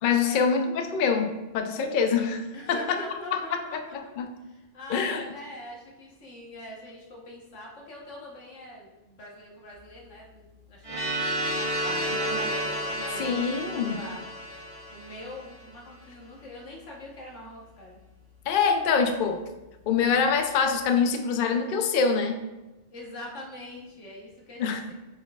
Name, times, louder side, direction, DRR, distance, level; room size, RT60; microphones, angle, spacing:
voice 1, 0.0-2.8 3.3-4.3 4.9-5.2 13.2-14.0 18.5-19.4 19.9-22.4 24.6-24.8, left 6 dB, 60° left, 6 dB, 0.6 m, -25 dB
voice 2, 2.5-4.1 4.4-11.1 11.6-13.4 13.9-14.2 14.9-18.0 22.9-24.9, left 1 dB, 75° left, -2 dB, 1.5 m, -43 dB
sound 1, 10.8-15.7, right 1 dB, 30° right, 1.2 m, -31 dB
9.2 x 4.4 x 2.3 m, 1.1 s
omnidirectional pair, 1.2 m